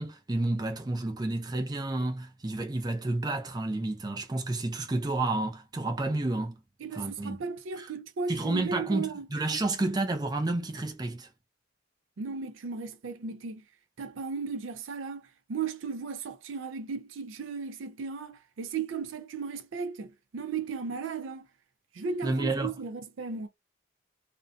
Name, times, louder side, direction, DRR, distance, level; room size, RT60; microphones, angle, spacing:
voice 1, 0.0-6.5 6.9-7.4 7.8-7.9 8.3-11.3 22.2-22.7, right 2 dB, 20° right, 0.4 m, -30 dB
voice 2, 6.8-9.3 12.2-13.6 14.0-21.5 21.9-23.5, right 5 dB, 75° right, 0.4 m, -36 dB
2.5 x 2.1 x 2.5 m
head